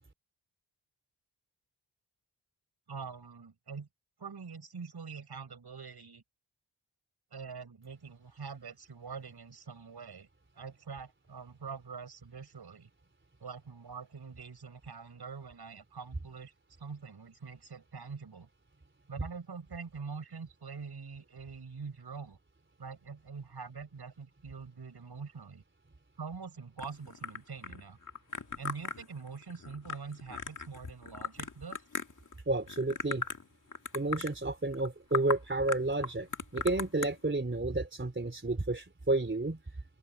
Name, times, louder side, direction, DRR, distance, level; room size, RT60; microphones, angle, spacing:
voice 1, 2.9-3.9 4.2-6.2 7.3-10.3 10.6-12.9 13.4-16.5 16.8-18.5 19.1-22.4 22.8-25.6 26.2-28.0 28.6-31.8, right 5 dB, 60° right, 6.2 m, -44 dB
sound 1, 26.8-32.3 32.7-33.5 33.7-34.3 34.7-34.9 35.1-35.4 35.7-37.1, left 4 dB, 45° left, 2.1 m, -38 dB
voice 2, 32.5-33.2 33.9-39.6, right 2 dB, 25° right, 3.6 m, -31 dB
open air
cardioid pair, 65°, 44 cm